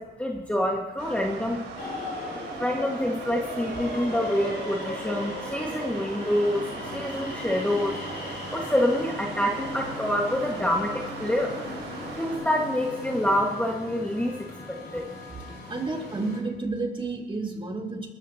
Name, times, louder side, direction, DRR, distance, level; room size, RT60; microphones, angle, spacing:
voice 1, 0.0-1.6 2.6-8.0 8.5-11.6 12.2-15.1, left 1 dB, 5° left, -1 dB, 1.8 m, -27 dB
sound 1, 1.0-12.4, right 5 dB, 70° right, 3.8 m, -40 dB
sound 2, 1.8-16.4, left 2 dB, 50° left, 5.8 m, -38 dB
voice 2, 15.7-18.1, right 3 dB, 25° right, 0 dB, 3.5 m, -31 dB
22.0 x 14.0 x 2.9 m, 1.3 s
cardioid pair, 90°, 20 cm